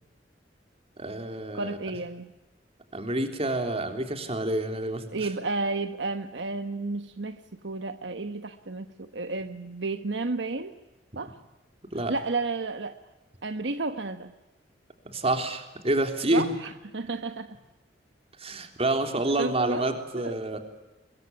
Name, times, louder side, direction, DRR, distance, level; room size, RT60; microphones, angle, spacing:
voice 1, 1.0-1.8 2.9-5.3 11.9-12.1 15.1-16.5 18.4-20.6, right 1 dB, 35° right, 6 dB, 3.6 m, -28 dB
voice 2, 1.5-2.3 5.1-10.7 11.1-11.4 11.9-13.0 13.4-14.3 16.3-17.6 19.4-19.8 20.1-20.3, right 3 dB, 70° right, 9 dB, 1.2 m, -32 dB
24.0 x 23.0 x 9.6 m, 1.0 s
head